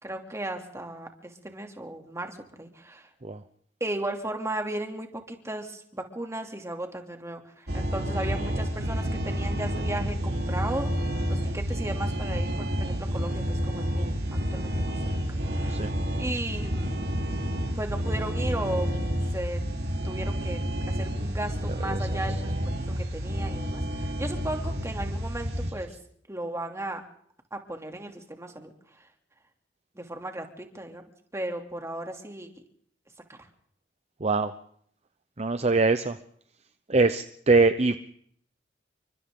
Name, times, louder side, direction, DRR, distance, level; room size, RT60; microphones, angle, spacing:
voice 1, 0.0-3.1 3.8-10.9 11.3-14.2 14.5-15.0 15.3-15.9 16.2-16.9 17.7-19.0 19.3-19.6 20.0-20.6 20.9-22.5 23.0-25.9 26.3-27.0 27.5-28.7 29.0-29.1 29.9-31.0 31.3-32.5 33.3-33.4, right 1 dB, 15° right, 4 dB, 2.9 m, -35 dB
sound 1, 7.7-25.7, equal, 60° right, 3.8 m, -29 dB
voice 2, 21.9-22.2 34.2-34.5 35.4-36.2 36.9-38.0, right 3 dB, 35° right, 10 dB, 0.9 m, -23 dB
29.5 x 24.5 x 3.8 m, 0.64 s
head